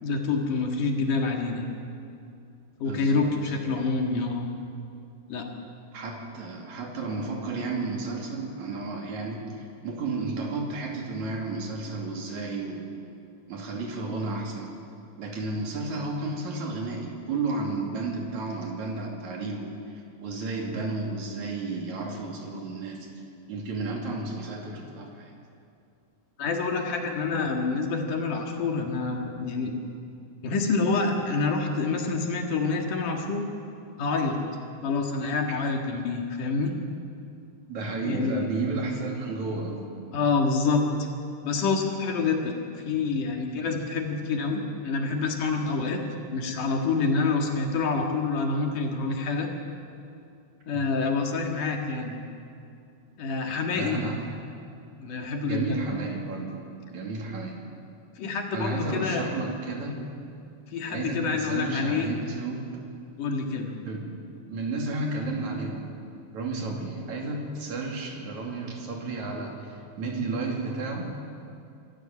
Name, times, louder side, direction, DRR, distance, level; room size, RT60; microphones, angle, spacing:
voice 1, 0.0-1.7 2.8-4.5 5.3-5.5 26.4-29.7 30.4-33.4 34.0-34.4 34.8-36.7 38.0-38.5 40.1-41.1 41.4-42.5 42.8-46.0 46.3-49.5 50.7-52.2 53.2-54.0 55.0-55.9 58.2-59.3 60.7-62.1 63.2-63.7, left 4 dB, 60° left, 2 dB, 3.1 m, -27 dB
voice 2, 2.9-3.3 5.9-12.9 13.5-14.8 15.2-23.1 23.5-25.3 37.7-39.9 50.7-50.9 53.7-54.2 55.5-56.6 56.9-57.6 58.5-60.0 60.9-62.7 63.8-65.9 66.3-71.1, right 3 dB, 50° right, 0 dB, 3.8 m, -32 dB
25.0 x 15.0 x 7.3 m, 2.5 s
omnidirectional pair, 4.4 m